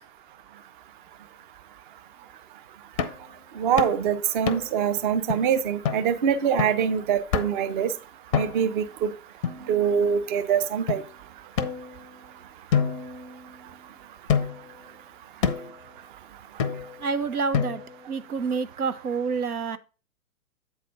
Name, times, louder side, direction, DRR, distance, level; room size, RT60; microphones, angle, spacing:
sound 1, 3.0-3.3 3.8-4.0 4.5-4.8 5.3-5.4 5.9-6.1 6.6-6.9 7.3-7.7 8.3-8.8 9.4-10.2 10.9-11.0 11.6-12.3 12.7-13.8 14.3-14.7 15.4-15.8 16.6-17.1 17.5-18.1, left 7 dB, 25° left, 0.5 m, -28 dB
voice 1, 3.6-7.9 8.3-9.1 9.7-11.0, right 8 dB, 35° right, 0.7 m, -24 dB
voice 2, 17.0-17.8 18.1-19.8, right 5 dB, 90° right, 0.6 m, -28 dB
7.9 x 4.2 x 4.8 m
figure-of-eight pair, 115°, 44 cm